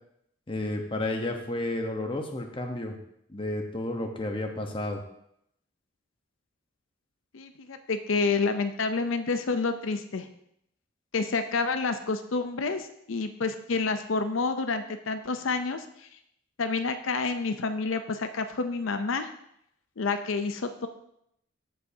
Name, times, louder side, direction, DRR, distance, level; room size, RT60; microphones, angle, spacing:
voice 1, 0.5-3.0 3.3-5.0, left 1 dB, 25° left, 3 dB, 0.9 m, -31 dB
voice 2, 7.3-10.3 11.1-16.1 16.6-19.3 20.0-20.9, left 4 dB, 85° left, 8 dB, 0.6 m, -29 dB
14.5 x 5.4 x 2.7 m, 0.74 s
head